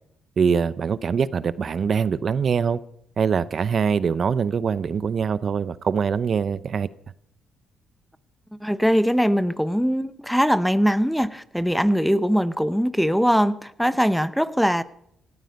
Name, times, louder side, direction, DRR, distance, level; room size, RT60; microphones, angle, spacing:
voice 1, 0.4-2.8 3.2-6.9, right 6 dB, 50° right, 17 dB, 0.6 m, -23 dB
voice 2, 8.6-14.8, equal, ahead, 15 dB, 0.8 m, -21 dB
17.5 x 13.5 x 5.3 m, 0.75 s
cardioid pair, 90°, 0 cm